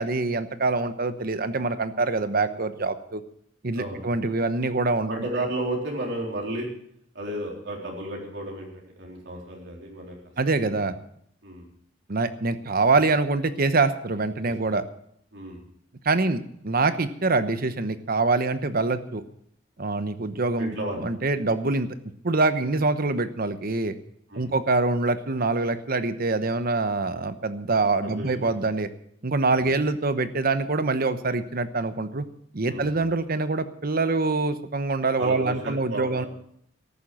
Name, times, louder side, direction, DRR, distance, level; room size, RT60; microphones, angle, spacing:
voice 1, 0.0-3.2 3.6-5.2 10.4-10.9 12.1-14.8 16.0-19.2 19.8-20.7 21.0-21.9 22.2-23.9 24.3-28.9 29.2-32.3 32.5-36.3, right 3 dB, 50° right, 11 dB, 1.0 m, -25 dB
voice 2, 3.7-4.1 5.1-6.7 7.1-10.2 10.4-10.6 11.4-11.7 14.5-14.6 15.3-15.6 20.6-21.1 24.3-24.5 28.0-28.7 29.5-29.7 32.7-33.1 35.2-36.3, right 1 dB, 65° right, -2 dB, 3.9 m, -33 dB
14.0 x 11.0 x 6.2 m, 0.69 s
head